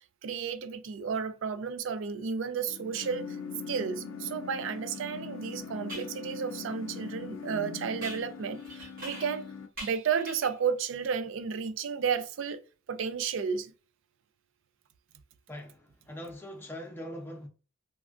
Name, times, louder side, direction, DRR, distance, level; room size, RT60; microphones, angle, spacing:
voice 1, 0.2-3.4 3.7-9.5 9.8-12.6 12.9-13.7, right 6 dB, 65° right, 0.3 m, -32 dB
sound 1, 2.7-9.7, left 5 dB, 70° left, 0.4 m, -41 dB
sound 2, 4.9-5.0 5.9-6.2 8.0-9.5 9.8-10.6, equal, 45° right, 1.2 m, -44 dB
voice 2, 15.5-17.5, equal, 10° left, 0.6 m, -42 dB
3.2 x 2.3 x 2.4 m
head